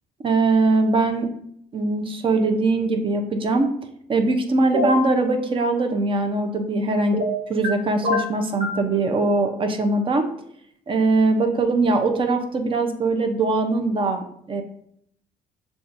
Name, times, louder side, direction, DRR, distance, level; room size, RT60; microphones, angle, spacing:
voice 1, 0.2-1.3 1.7-3.7 4.1-7.2 7.5-10.2 10.9-14.6, right 3 dB, 30° right, 5 dB, 0.6 m, -21 dB
sound 1, 4.7-5.1 7.1-7.7 8.0-8.8, left 1 dB, 50° right, 1.2 m, -24 dB
6.4 x 2.4 x 2.6 m, 0.70 s
cardioid pair, 110°, 17 cm